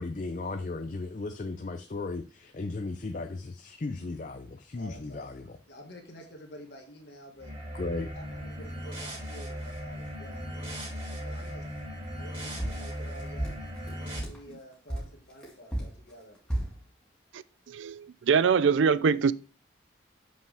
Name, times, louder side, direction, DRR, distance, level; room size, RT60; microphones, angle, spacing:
voice 1, 0.0-5.6 7.7-8.1, left 3 dB, 40° left, 0.5 m, -36 dB
voice 2, 4.7-7.5 8.1-10.5 11.1-11.7 12.2-13.5 14.1-16.4, equal, 55° left, 1.8 m, -49 dB
sound 1, 7.4-14.2, equal, 30° right, 3.4 m, -38 dB
sound 2, 12.6-14.5 14.9-16.8, right 1 dB, 5° left, 1.9 m, -33 dB
voice 3, 17.7-19.3, right 6 dB, 75° right, 0.4 m, -23 dB
7.5 x 5.5 x 3.4 m
head